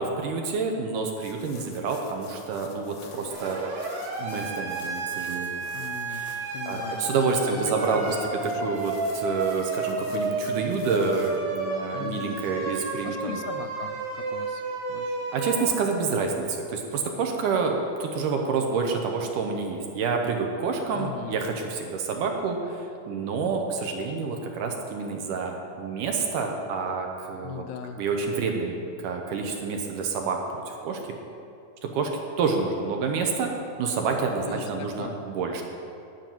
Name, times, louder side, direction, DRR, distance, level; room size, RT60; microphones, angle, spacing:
voice 1, 0.0-3.6 4.2-5.6 6.1-13.4 15.3-27.6 28.0-31.0 31.8-32.1 32.4-33.5 33.8-35.6, right 4 dB, 75° right, 2 dB, 2.3 m, -28 dB
sound 1, 1.2-11.4, left 5 dB, 60° left, 1.9 m, -50 dB
Siren, 3.3-15.7, right 3 dB, 55° right, 2.8 m, -32 dB
voice 2, 5.7-7.1 7.3-7.7 8.1-8.7 11.9-12.3 13.0-14.6 14.9-15.2 20.9-21.4 27.4-28.0 34.4-35.2, left 9 dB, 80° left, 8 dB, 2.3 m, -39 dB
12.0 x 5.9 x 9.1 m, 2.5 s
omnidirectional pair, 4.2 m